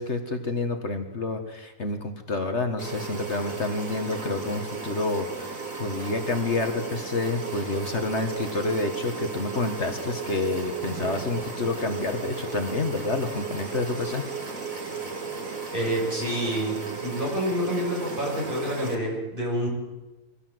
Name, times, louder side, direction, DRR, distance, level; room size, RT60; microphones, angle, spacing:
voice 1, 0.0-14.2, left 3 dB, 55° left, 6 dB, 1.9 m, -29 dB
sound 1, 2.8-19.0, right 5 dB, 75° right, 3.2 m, -35 dB
voice 2, 15.7-19.7, equal, 40° right, -2 dB, 7.8 m, -28 dB
24.0 x 16.0 x 7.9 m, 1.1 s
omnidirectional pair, 1.4 m